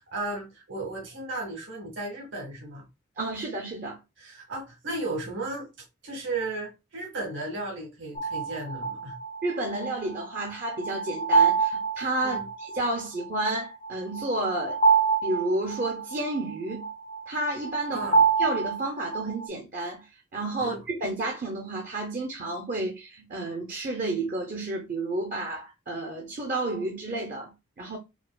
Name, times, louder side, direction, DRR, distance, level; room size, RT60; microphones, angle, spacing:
voice 1, 0.1-2.8 4.2-5.7 6.0-9.1 12.2-12.5 17.9-18.2 20.6-20.8, right 2 dB, 70° right, 1.3 m, -34 dB
voice 2, 3.2-4.0 9.4-14.8 15.2-16.9 17.3-18.1 18.4-20.1 20.3-28.0, right 2 dB, 40° right, 0.6 m, -31 dB
sound 1, 8.2-19.5, right 5 dB, 30° left, 0.5 m, -27 dB
4.6 x 2.2 x 2.3 m
head